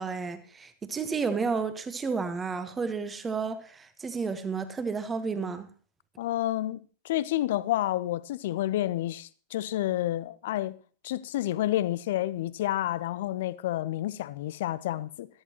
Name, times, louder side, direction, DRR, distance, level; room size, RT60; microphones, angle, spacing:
voice 1, 0.0-5.7, right 5 dB, 15° right, 1.4 m, -31 dB
voice 2, 6.2-10.8 11.0-15.3, left 14 dB, 55° left, 0.6 m, -29 dB
15.0 x 13.0 x 3.0 m
figure-of-eight pair, 90°, 0 cm